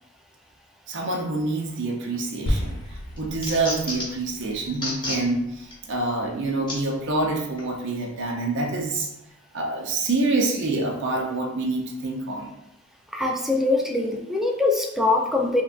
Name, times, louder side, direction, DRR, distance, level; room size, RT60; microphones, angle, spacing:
voice 1, 0.9-9.1 9.5-12.5, right 2 dB, 60° right, 0 dB, 0.6 m, -26 dB
sound 1, 2.1-2.6 2.9-4.2 4.7-5.2 5.7-5.8 6.7-6.8 7.6-7.7, left 2 dB, 25° left, 0.9 m, -31 dB
sound 2, 2.5-6.8, equal, 90° left, 0.8 m, -33 dB
voice 2, 13.1-15.6, left 2 dB, ahead, 1 dB, 0.3 m, -23 dB
5.2 x 2.2 x 2.5 m, 0.85 s
head